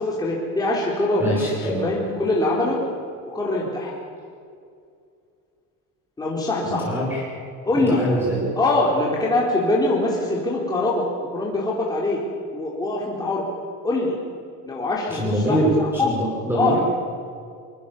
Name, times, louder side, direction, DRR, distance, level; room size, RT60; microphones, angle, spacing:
voice 1, 0.0-2.8 3.3-3.9 6.2-6.9 7.6-8.0 8.6-12.2 12.5-13.4 13.8-14.2 14.6-16.1 16.5-16.8, left 2 dB, 10° left, -4 dB, 3.7 m, -23 dB
voice 2, 1.2-1.8 6.6-7.2 7.7-8.4 15.1-16.8, equal, 5° right, -4 dB, 6.1 m, -23 dB
23.5 x 23.5 x 7.2 m, 2.4 s
cardioid pair, 140°, 37 cm